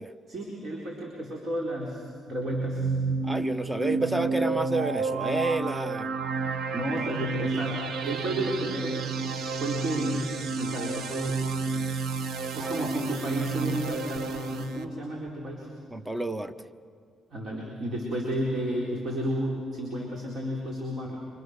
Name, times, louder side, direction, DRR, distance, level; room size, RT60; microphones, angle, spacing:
voice 1, 0.3-2.9 6.7-9.0 9.2-10.3 10.6-11.5 12.5-15.7 17.3-21.2, right 1 dB, 50° right, -2 dB, 4.4 m, -32 dB
sound 1, 2.3-14.9, right 4 dB, 70° right, 1.3 m, -31 dB
voice 2, 3.2-6.1 12.6-12.9 15.9-16.5, right 2 dB, 15° right, 12 dB, 1.0 m, -30 dB
28.5 x 25.5 x 6.7 m, 2.2 s
cardioid pair, 90°, 0 cm